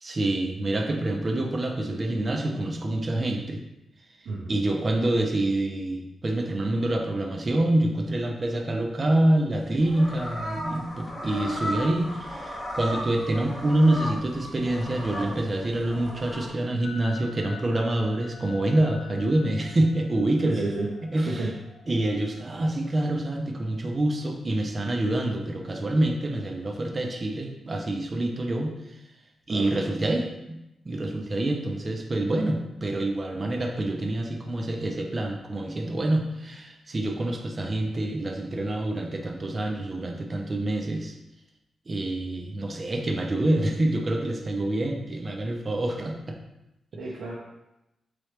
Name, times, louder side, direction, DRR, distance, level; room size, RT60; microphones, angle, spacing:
voice 1, 0.0-3.6 4.5-20.7 21.1-21.5 21.9-29.0 29.5-30.6 30.9-41.1 41.9-46.4, right 1 dB, 30° right, 2 dB, 0.5 m, -26 dB
voice 2, 4.2-4.6 20.4-20.9 21.2-21.5 29.5-29.8 46.9-47.3, right 2 dB, 85° right, -4 dB, 0.6 m, -31 dB
sound 1, 9.6-16.5, equal, 25° left, 0.9 m, -35 dB
sound 2, 16.8-22.2, left 5 dB, 80° left, 0.5 m, -47 dB
3.7 x 3.2 x 3.1 m, 0.92 s
wide cardioid pair, 125°, 0 cm